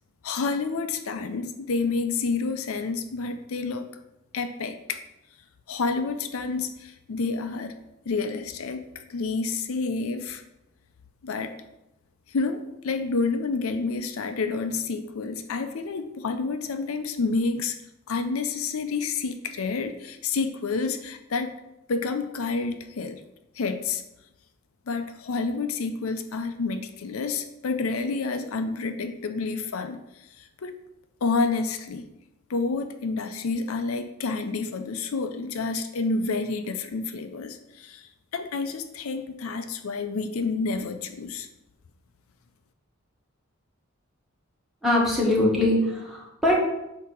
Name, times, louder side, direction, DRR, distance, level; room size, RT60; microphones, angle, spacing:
voice 1, 0.2-3.9 4.3-5.0 5.7-7.8 8.1-10.4 11.2-11.5 12.3-17.8 18.1-21.5 21.9-23.2 23.5-24.0 24.9-30.8 31.2-32.1 32.5-41.5, left 4 dB, 80° left, 8 dB, 0.5 m, -29 dB
voice 2, 44.8-46.6, left 1 dB, ahead, -5 dB, 1.6 m, -22 dB
8.3 x 2.9 x 5.8 m, 0.92 s
head